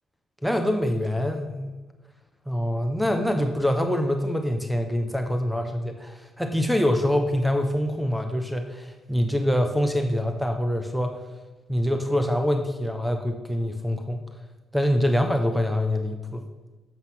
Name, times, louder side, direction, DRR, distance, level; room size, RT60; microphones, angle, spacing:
voice 1, 0.4-1.8 2.5-11.2 11.7-14.2 14.7-16.4, equal, ahead, 4 dB, 1.0 m, -25 dB
8.1 x 7.3 x 6.0 m, 1.2 s
supercardioid pair, 75°, 0 cm